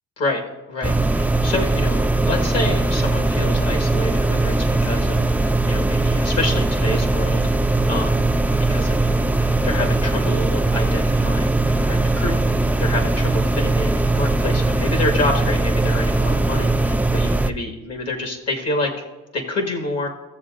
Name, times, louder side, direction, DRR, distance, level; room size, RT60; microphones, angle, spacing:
voice 1, 0.7-4.5 4.8-7.4 7.9-8.2 8.7-19.1 19.3-20.1, left 2 dB, 55° left, 3 dB, 1.7 m, -28 dB
sound 1, 0.8-17.5, right 2 dB, 5° right, 0.3 m, -20 dB
16.5 x 7.1 x 2.5 m, 1.2 s
cardioid pair, 90°, 30 cm